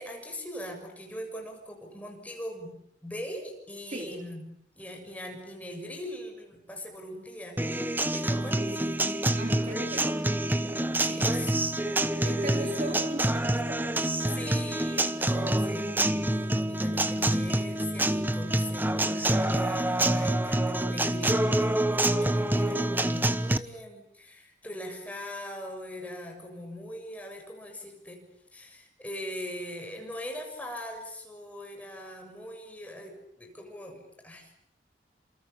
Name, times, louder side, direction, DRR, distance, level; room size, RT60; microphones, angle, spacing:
voice 1, 0.0-4.4 4.8-7.8 8.1-9.2 11.1-11.7 12.2-12.7 14.2-28.2 28.5-34.6, left 1 dB, 10° left, 3 dB, 7.0 m, -41 dB
Acoustic guitar, 7.6-23.6, right 1 dB, 10° right, 1.2 m, -27 dB
voice 2, 9.4-10.2 11.0-11.3 12.2-13.8, right 2 dB, 40° right, 3 dB, 4.6 m, -37 dB
30.0 x 28.0 x 7.0 m, 0.71 s
head